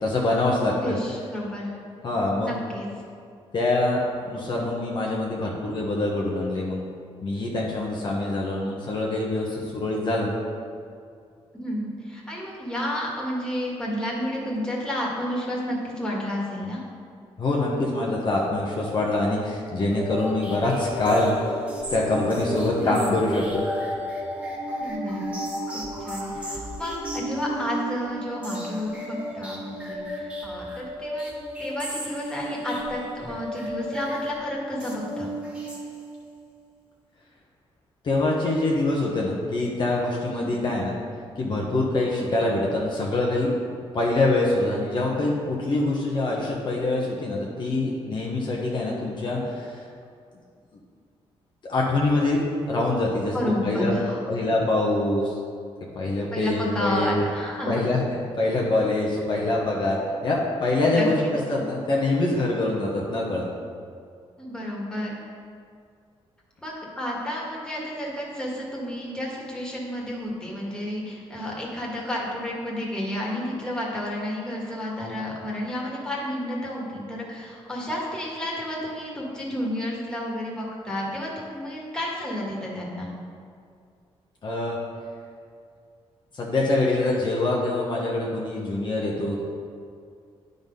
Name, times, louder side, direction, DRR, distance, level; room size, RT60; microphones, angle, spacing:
voice 1, 0.0-1.0 2.0-2.5 3.5-6.8 7.2-10.3 17.4-21.5 21.9-23.6 38.0-41.0 41.4-43.5 43.9-49.8 51.6-53.3 53.6-53.9 54.3-55.4 55.9-57.2 57.7-58.0 58.4-63.4 84.4-84.8 86.3-89.4, left 2 dB, 45° left, -3 dB, 1.1 m, -24 dB
voice 2, 0.7-1.7 2.3-2.9 11.5-16.8 22.7-23.1 24.8-25.3 25.7-31.3 31.6-35.3 40.3-40.6 53.3-54.2 56.3-57.8 60.9-61.3 64.4-65.1 66.6-83.1, left 1 dB, 5° left, -4 dB, 1.9 m, -31 dB
sound 1, 19.9-36.3, equal, 10° right, 1.6 m, -33 dB
9.1 x 4.0 x 5.3 m, 2.2 s
cardioid pair, 95°, 11 cm